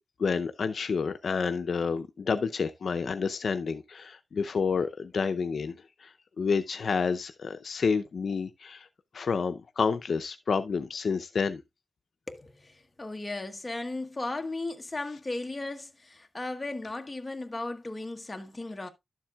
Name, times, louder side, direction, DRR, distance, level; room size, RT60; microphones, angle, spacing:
voice 1, 0.2-8.9 9.1-11.6, left 5 dB, 70° left, 0.6 m, -29 dB
voice 2, 12.3-18.9, left 2 dB, 25° left, 1.2 m, -36 dB
12.0 x 7.3 x 2.3 m
wide cardioid pair, 120°, 0 cm